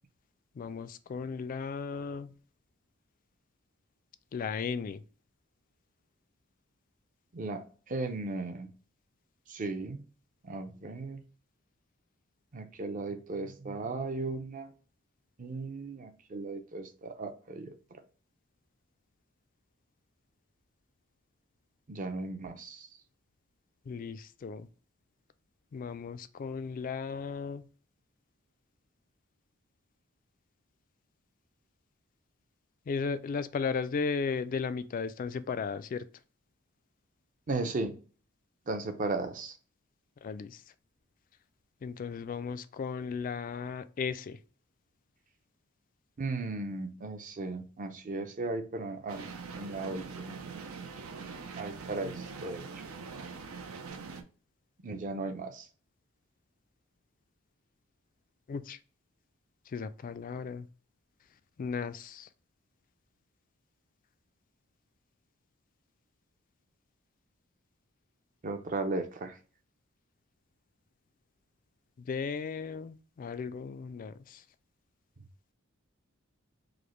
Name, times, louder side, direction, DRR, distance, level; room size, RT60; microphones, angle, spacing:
voice 1, 0.5-2.3 4.3-5.0 23.9-24.7 25.7-27.6 32.9-36.1 40.2-40.6 41.8-44.4 58.5-58.8 59.7-60.7 61.6-62.3 72.0-74.4, left 5 dB, 40° left, 0.3 m, -35 dB
voice 2, 7.3-8.7 9.5-10.0 10.4-11.2 12.5-14.7 15.4-17.7 21.9-22.9 37.5-38.0 38.7-39.5 46.2-50.4 51.6-52.6 54.8-55.7 68.4-69.4, right 3 dB, 40° right, 0.5 m, -36 dB
sound 1, 49.1-54.2, right 5 dB, 85° right, 0.6 m, -43 dB
4.9 x 2.1 x 3.0 m
head